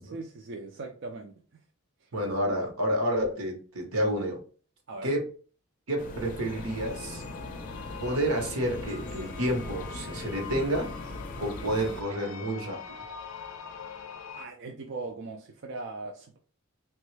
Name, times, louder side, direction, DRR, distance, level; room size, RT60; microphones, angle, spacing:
voice 1, 0.0-1.3 4.9-5.1 14.3-16.4, right 3 dB, 60° right, 2 dB, 0.4 m, -39 dB
voice 2, 2.1-4.4 5.0-5.3 5.9-7.2 8.0-10.9 11.4-13.0, equal, 90° right, 2 dB, 1.0 m, -29 dB
sound 1, 6.0-12.0, left 2 dB, 40° left, 0.5 m, -40 dB
sound 2, 6.5-14.5, left 6 dB, 90° left, 0.5 m, -44 dB
3.1 x 2.3 x 3.1 m, 0.40 s
head